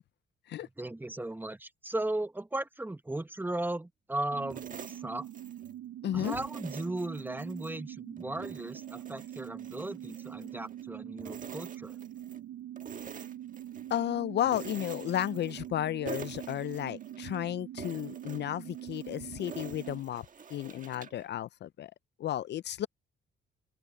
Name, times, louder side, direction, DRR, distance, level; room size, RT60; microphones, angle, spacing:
voice 1, 0.6-5.3 6.1-12.0, right 1 dB, 10° right, 1.0 m, -36 dB
sound 1, 4.3-20.0, right 12 dB, 80° right, 0.7 m, -44 dB
sound 2, 4.5-5.8 6.2-7.8 8.2-10.9 11.2-12.4 12.8-14.0 14.4-15.8 16.0-17.4 17.8-21.2, right 6 dB, 40° right, 1.5 m, -47 dB
voice 2, 6.0-6.4 13.9-21.9 22.2-22.9, left 12 dB, 60° left, 0.5 m, -33 dB
open air
cardioid pair, 90°, 20 cm